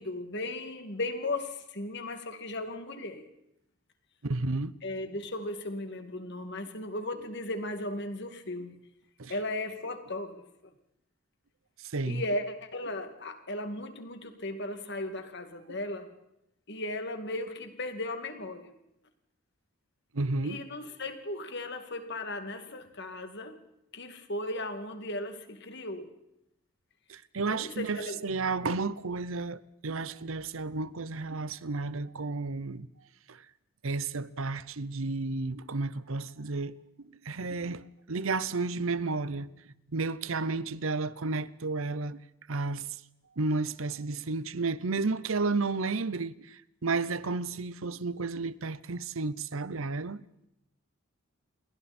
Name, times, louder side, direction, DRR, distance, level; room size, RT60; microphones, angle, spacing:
voice 1, 0.0-3.2 4.8-8.7 9.3-10.7 12.1-16.2 16.7-18.7 20.4-23.6 23.9-26.1 27.5-28.2, left 1 dB, 55° left, 2.4 m, -36 dB
voice 2, 4.2-4.7 9.2-9.3 11.8-12.2 20.1-20.6 27.1-32.9 33.3-33.4 33.8-39.5 39.9-42.2 42.5-42.9 43.4-50.2, right 3 dB, 70° right, 0.8 m, -32 dB
29.0 x 22.5 x 4.4 m
head